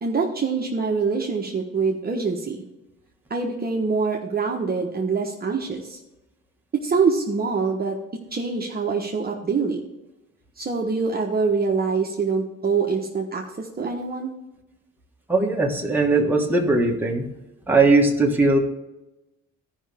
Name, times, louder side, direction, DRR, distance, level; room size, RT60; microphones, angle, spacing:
voice 1, 0.0-2.6 3.3-6.0 6.8-8.0 8.3-9.8 10.6-14.3, right 4 dB, 30° right, -1 dB, 1.2 m, -24 dB
voice 2, 15.3-17.3 17.7-18.6, right 3 dB, 5° right, -1 dB, 1.6 m, -19 dB
13.5 x 5.6 x 3.5 m, 0.98 s
cardioid pair, 90°, 30 cm